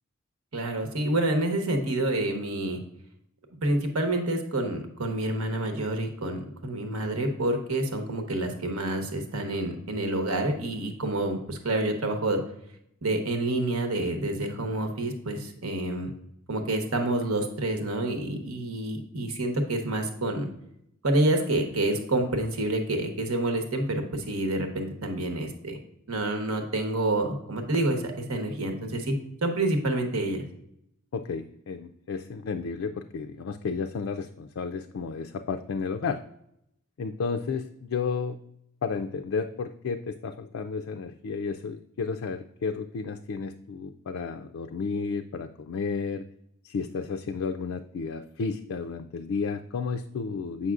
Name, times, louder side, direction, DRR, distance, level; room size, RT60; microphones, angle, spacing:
voice 1, 0.5-2.8 3.6-12.4 13.0-16.1 16.5-20.5 21.0-25.8 26.1-30.4, right 1 dB, 85° right, 5 dB, 1.1 m, -28 dB
voice 2, 31.1-36.2 37.0-38.4 38.8-46.3 46.6-50.7, left 5 dB, 65° left, 6 dB, 0.4 m, -32 dB
7.8 x 5.8 x 2.4 m, 0.77 s
head